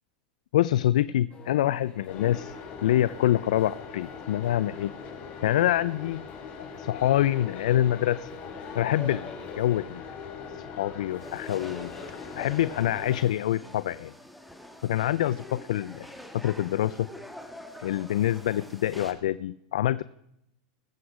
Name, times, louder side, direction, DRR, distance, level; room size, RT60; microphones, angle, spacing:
voice 1, 0.5-2.5 2.8-4.9 5.4-6.2 6.7-8.3 8.7-9.3 9.6-10.0 10.5-11.9 12.4-14.1 14.8-16.1 16.3-17.1 17.8-20.0, left 12 dB, 80° left, 17 dB, 0.4 m, -26 dB
sound 1, 1.3-13.2, left 4 dB, 25° left, 3.4 m, -46 dB
sound 2, 2.1-13.3, left 5 dB, 45° left, 3.3 m, -42 dB
sound 3, 11.2-19.1, left 1 dB, ahead, 2.0 m, -46 dB
20.0 x 8.1 x 4.9 m, 0.79 s
hypercardioid pair, 115°, 4 cm